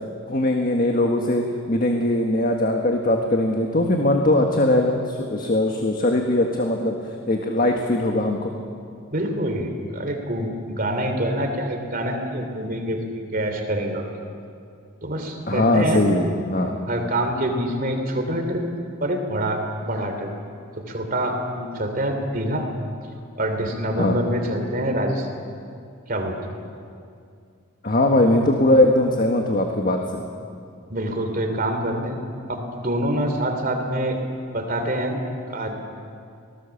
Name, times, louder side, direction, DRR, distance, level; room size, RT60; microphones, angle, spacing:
voice 1, 0.3-7.0 7.3-8.5 15.5-16.8 24.0-24.2 27.8-30.2, left 1 dB, 40° left, 2 dB, 1.6 m, -20 dB
voice 2, 9.1-14.1 15.0-16.1 16.9-18.6 19.0-20.3 20.8-22.7 23.4-25.3 26.1-26.4 30.9-32.2 32.5-34.2 34.5-35.2 35.5-35.7, right 1 dB, 45° right, 4 dB, 3.1 m, -26 dB
25.5 x 18.5 x 7.2 m, 2.3 s
head